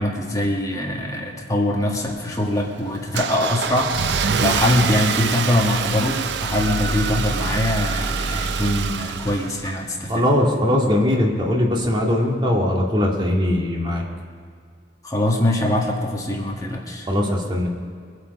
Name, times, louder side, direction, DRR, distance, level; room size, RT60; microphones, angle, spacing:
voice 1, 0.0-3.9 4.4-10.2 15.0-17.1, left 1 dB, 20° left, -1 dB, 1.7 m, -23 dB
Car / Engine starting, 1.9-10.1, right 5 dB, 70° right, 0.6 m, -25 dB
voice 2, 10.1-14.0 17.1-17.7, left 1 dB, 25° right, -2 dB, 2.0 m, -20 dB
22.5 x 8.3 x 5.4 m, 2.1 s
head